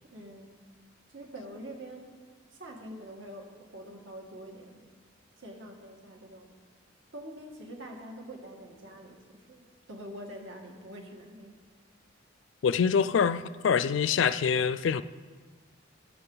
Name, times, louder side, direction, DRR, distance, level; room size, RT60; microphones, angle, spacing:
voice 1, 0.1-0.6 1.1-2.3 2.5-4.8 5.4-6.5 7.1-11.6, right 1 dB, 70° right, 1.9 m, -45 dB
voice 2, 12.6-15.0, left 6 dB, 65° left, 0.3 m, -25 dB
15.5 x 7.7 x 3.9 m
head